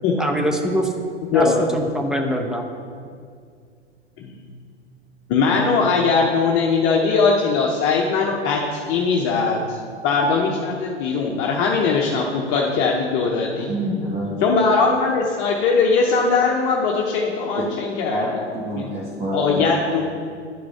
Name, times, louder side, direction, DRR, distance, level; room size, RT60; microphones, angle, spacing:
voice 1, 0.2-0.9 1.3-2.7, equal, ahead, 2 dB, 0.4 m, -23 dB
voice 2, 5.3-8.6 8.9-13.7 14.4-18.2 18.7-18.9 19.3-20.0, left 4 dB, 35° left, -1 dB, 0.8 m, -20 dB
voice 3, 13.6-14.3 17.6-17.7 18.1-19.7, equal, 20° right, -7 dB, 1.3 m, -27 dB
10.5 x 4.9 x 3.6 m, 2.2 s
figure-of-eight pair, 100°, 35 cm